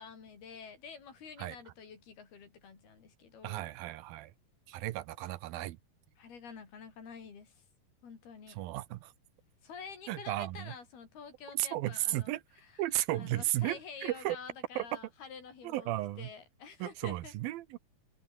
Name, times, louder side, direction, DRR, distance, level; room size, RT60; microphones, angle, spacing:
voice 1, 0.0-3.7 6.2-7.6 8.0-8.6 9.6-12.8 13.1-17.3, left 6 dB, 80° left, 6.5 m, -49 dB
voice 2, 3.4-4.3 4.7-5.8 8.6-9.1 10.1-10.7 11.5-12.4 12.8-14.4 14.8-14.9 15.6-16.3 16.8-17.8, right 16 dB, 80° right, 2.6 m, -34 dB
omnidirectional pair, 4.4 m